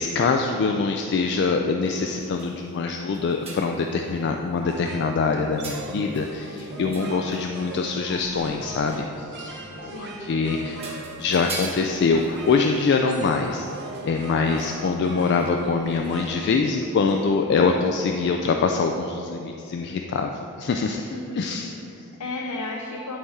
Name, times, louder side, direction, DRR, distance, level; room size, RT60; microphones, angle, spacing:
voice 1, 0.0-10.8 11.2-13.7 14.0-20.3 20.6-21.0 21.4-21.7, left 4 dB, 50° left, 3 dB, 0.3 m, -24 dB
sound 1, 1.8-4.7 5.6-8.0 8.9-9.3 10.3-10.4 10.8-15.0 15.4-15.6 16.0-16.3 17.1-17.2, right 2 dB, 25° right, 1.5 m, -42 dB
sound 2, 4.5-17.3, right 2 dB, 50° right, 0.9 m, -39 dB
voice 2, 9.8-10.4 14.3-14.5 20.9-23.2, left 2 dB, 85° left, -1 dB, 0.7 m, -36 dB
11.0 x 4.2 x 3.6 m, 2.6 s
head